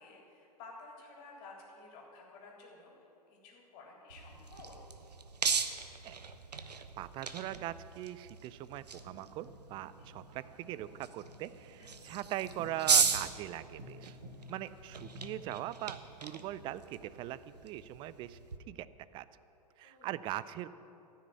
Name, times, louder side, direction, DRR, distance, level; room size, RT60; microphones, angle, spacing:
voice 1, 0.0-3.0 3.4-4.8 10.0-10.1 11.8-12.0 14.5-14.6 16.0-16.2 19.8-20.5, left 3 dB, 40° left, -1 dB, 3.4 m, -53 dB
sound 1, 4.1-18.6, right 5 dB, 80° right, 0.8 m, -37 dB
voice 2, 6.7-14.2 14.5-18.4 18.7-18.9 19.1-19.3 19.8-20.7, right 14 dB, 25° right, 16 dB, 0.4 m, -41 dB
sound 2, 8.9-15.6, equal, 50° right, 1.5 m, -53 dB
14.0 x 6.5 x 9.2 m, 2.8 s
figure-of-eight pair, 100°, 21 cm